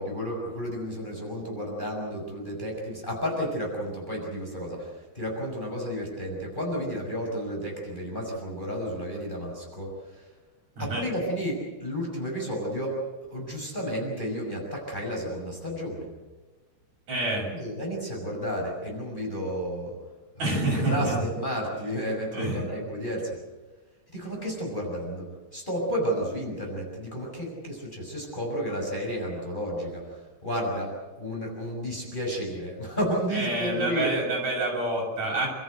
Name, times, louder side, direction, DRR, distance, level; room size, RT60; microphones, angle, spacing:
voice 1, 0.0-10.2 10.8-16.1 17.5-20.0 20.4-20.6 20.8-23.4 24.1-34.2, equal, 15° left, -1 dB, 5.9 m, -32 dB
voice 2, 17.1-17.5 20.4-21.2 22.3-22.6 33.3-35.5, right 2 dB, 65° right, -2 dB, 8.7 m, -27 dB
28.5 x 14.0 x 8.0 m, 1.2 s
omnidirectional pair, 3.4 m